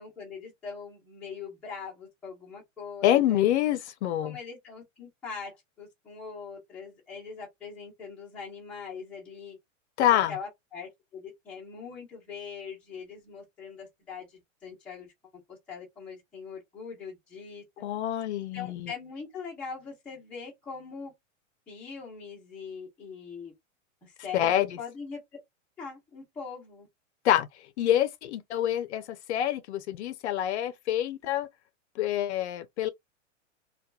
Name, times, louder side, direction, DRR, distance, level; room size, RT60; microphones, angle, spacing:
voice 1, 0.0-3.4 4.2-9.6 10.1-15.1 15.5-17.6 18.5-21.1 21.7-23.5 24.0-25.2 25.8-26.9, left 5 dB, 5° left, 0.5 m, -42 dB
voice 2, 3.0-4.4 10.0-10.3 17.8-18.9 24.3-24.8 27.2-27.5 27.8-31.5 32.0-32.9, left 12 dB, 60° left, 0.5 m, -26 dB
2.7 x 2.2 x 2.2 m
supercardioid pair, 160°, 38 cm